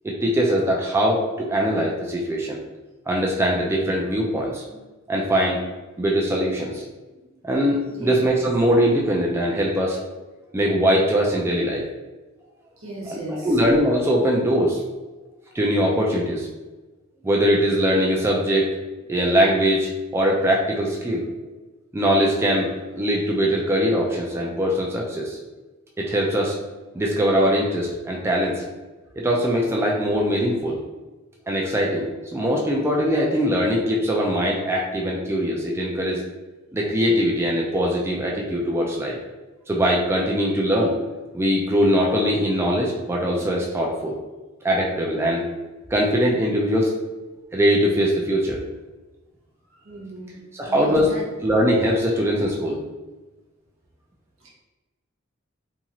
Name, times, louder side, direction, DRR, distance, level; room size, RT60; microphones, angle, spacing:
voice 1, 0.0-2.6 3.1-4.8 5.1-5.6 6.0-6.8 7.4-10.0 10.5-11.8 13.0-14.8 15.5-16.5 17.2-18.7 19.1-21.2 21.9-22.7 23.0-25.4 26.0-26.6 26.9-28.6 29.2-30.8 31.5-36.2 36.7-39.2 39.7-41.0 41.3-44.2 44.6-45.5 45.9-46.9 47.5-48.6 50.5-51.1 51.4-52.8, equal, 15° right, -2 dB, 0.3 m, -21 dB
voice 2, 12.8-13.5 49.8-50.4 50.7-51.2, right 1 dB, 75° right, -4 dB, 0.9 m, -35 dB
2.6 x 2.4 x 2.9 m, 1.2 s
head